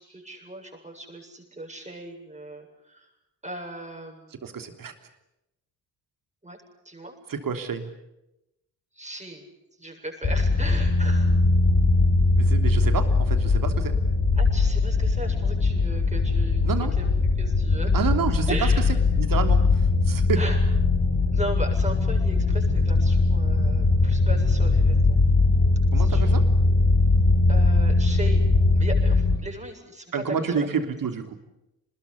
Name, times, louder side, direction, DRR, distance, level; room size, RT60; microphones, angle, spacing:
voice 1, 0.0-3.1 3.4-4.4 6.4-6.6 6.8-7.1 8.9-9.5 9.8-11.4 14.4-18.1 18.5-19.0 20.4-20.6 21.2-25.0 26.0-26.4 27.5-30.7, right 1 dB, 15° right, 2 dB, 7.9 m, -37 dB
voice 2, 4.3-4.9 7.3-7.9 12.4-13.9 16.6-16.9 17.9-18.5 19.2-20.4 25.9-26.5 30.1-31.3, right 6 dB, 40° right, 7 dB, 3.3 m, -29 dB
sound 1, 10.2-29.4, left 3 dB, 35° left, 4.6 m, -21 dB
29.0 x 21.0 x 8.6 m, 0.88 s
figure-of-eight pair, 40°, 49 cm